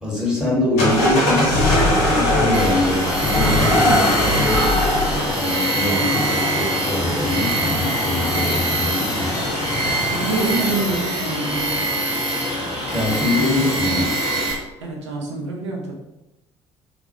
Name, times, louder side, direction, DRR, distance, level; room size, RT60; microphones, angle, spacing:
voice 1, 0.0-4.7 5.4-9.4 12.9-14.2, left 1 dB, 5° right, -5 dB, 1.0 m, -23 dB
sound 1, 0.8-11.0, left 1 dB, 65° left, 0.7 m, -22 dB
sound 2, 2.0-14.5, left 3 dB, 35° left, 0.4 m, -33 dB
Tools, 2.5-14.5, right 1 dB, 45° right, 0.9 m, -24 dB
voice 2, 10.1-11.8 14.8-16.0, right 3 dB, 75° right, -1 dB, 0.5 m, -26 dB
2.1 x 2.0 x 2.8 m, 0.94 s
figure-of-eight pair, 50°, 15 cm